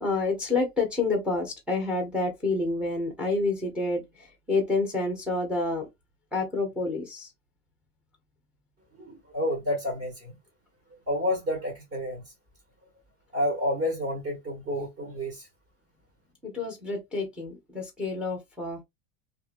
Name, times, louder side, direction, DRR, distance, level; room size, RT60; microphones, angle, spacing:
voice 1, 0.0-5.9 6.3-7.3 16.4-18.8, left 3 dB, ahead, 0.7 m, -28 dB
voice 2, 9.0-10.4 11.1-12.3 13.3-15.5, left 1 dB, 30° right, 1.4 m, -30 dB
2.7 x 2.5 x 2.5 m
supercardioid pair, 150°, 42 cm